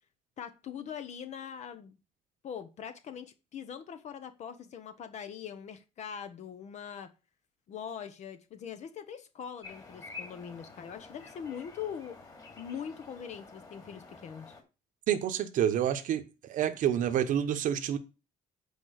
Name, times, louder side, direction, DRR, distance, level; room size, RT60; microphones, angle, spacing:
voice 1, 0.4-1.9 2.4-7.1 7.7-12.2 12.6-14.5, left 8 dB, 55° left, 1.0 m, -42 dB
sound 1, 9.6-14.6, left 4 dB, 25° left, 2.7 m, -49 dB
voice 2, 15.1-18.0, right 10 dB, 65° right, 1.0 m, -28 dB
8.4 x 5.1 x 6.4 m
cardioid pair, 155°, 14 cm